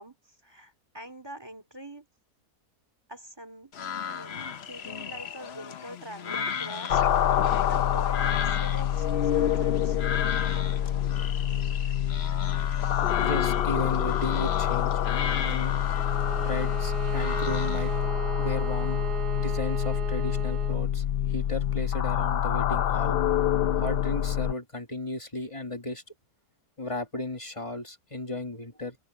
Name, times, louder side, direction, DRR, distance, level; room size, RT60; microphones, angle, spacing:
voice 1, 0.0-2.1 3.1-7.3 7.6-10.0 12.8-13.1, equal, 15° right, 2.7 m, -44 dB
sound 1, 3.7-18.0, left 7 dB, 50° left, 0.9 m, -36 dB
sound 2, 6.9-24.5, left 10 dB, 75° left, 0.5 m, -26 dB
voice 2, 13.2-15.0 15.4-15.7 16.3-17.9 18.4-19.0 19.3-23.2 23.8-26.0 26.8-29.0, left 2 dB, 20° left, 1.6 m, -35 dB
Bowed string instrument, 15.9-20.8, right 9 dB, 85° right, 1.5 m, -36 dB
omnidirectional pair, 1.7 m